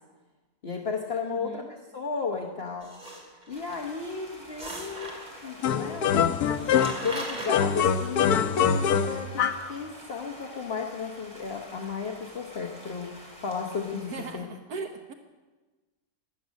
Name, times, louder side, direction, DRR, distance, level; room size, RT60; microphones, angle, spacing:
voice 1, 0.6-1.6 1.9-2.9 3.5-5.2 5.4-8.4 9.0-13.1 13.4-14.5, left 5 dB, 45° left, 1 dB, 1.3 m, -34 dB
voice 2, 1.2-1.7 13.9-15.1, right 5 dB, 75° right, 5 dB, 1.4 m, -39 dB
sound 1, 2.8-3.7 4.6-5.5 6.2-6.3 6.5-7.6, right 1 dB, 25° right, 2.8 m, -38 dB
Stream, 3.5-14.3, equal, 10° right, 3.9 m, -48 dB
sound 2, 5.6-7.1 7.5-9.7, left 7 dB, 80° left, 1.3 m, -24 dB
18.0 x 12.5 x 6.4 m, 1.3 s
omnidirectional pair, 1.6 m